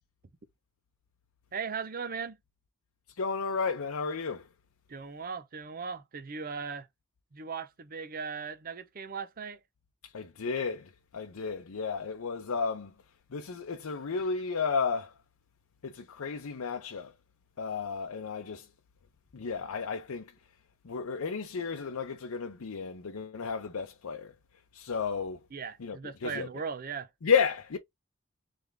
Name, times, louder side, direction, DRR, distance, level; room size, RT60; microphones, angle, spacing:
voice 1, 1.5-2.4 4.9-6.9 7.3-9.6 25.5-27.1, right 5 dB, 40° right, 0.6 m, -38 dB
voice 2, 3.1-4.5 10.0-12.9 13.3-15.1 15.8-17.1 17.6-18.7 19.3-20.3 20.8-24.3 24.7-25.4 25.8-26.5 27.2-27.8, left 5 dB, 75° left, 0.6 m, -32 dB
3.6 x 3.4 x 3.4 m
head